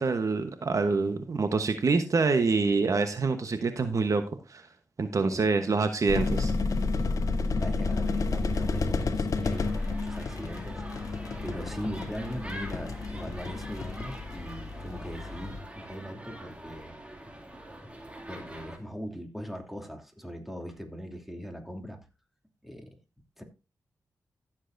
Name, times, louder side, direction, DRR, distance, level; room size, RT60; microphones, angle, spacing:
voice 1, 0.0-4.2 4.5-4.7 5.0-6.5, right 4 dB, 55° right, 1.1 m, -26 dB
voice 2, 5.2-5.7 7.6-16.9 18.3-22.0 22.6-23.0 23.4-23.5, equal, 5° right, 2.7 m, -40 dB
sound 1, 6.1-15.6, left 3 dB, 60° left, 1.4 m, -31 dB
sound 2, 9.5-18.8, right 1 dB, 20° right, 2.6 m, -44 dB
15.0 x 7.4 x 2.7 m
cardioid pair, 50°, 6 cm